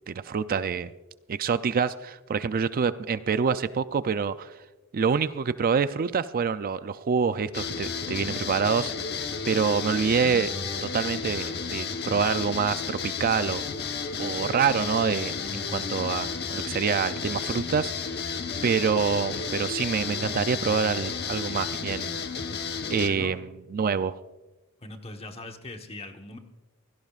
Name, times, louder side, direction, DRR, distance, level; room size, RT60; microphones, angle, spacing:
voice 1, 0.1-0.9 1.3-4.5 4.9-8.9 9.5-10.5 10.8-13.6 14.2-17.9 18.6-22.1 22.9-24.2, right 6 dB, 40° right, 13 dB, 0.4 m, -26 dB
sound 1, 7.5-23.1, left 5 dB, 50° left, 1.1 m, -32 dB
voice 2, 22.9-23.4 24.8-26.4, left 2 dB, 25° left, 5 dB, 1.2 m, -40 dB
24.0 x 17.0 x 2.4 m, 1.1 s
head